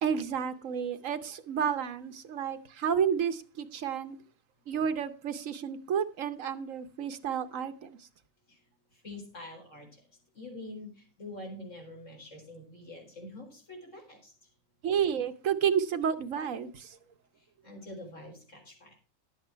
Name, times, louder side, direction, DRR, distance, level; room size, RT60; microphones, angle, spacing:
voice 1, 0.0-4.2 4.7-8.0 14.8-17.0, right 7 dB, 70° right, 1.2 m, -31 dB
voice 2, 8.9-10.0 10.3-14.3 17.4-19.0, left 1 dB, 60° left, 4.6 m, -46 dB
11.5 x 8.3 x 4.5 m
omnidirectional pair, 1.4 m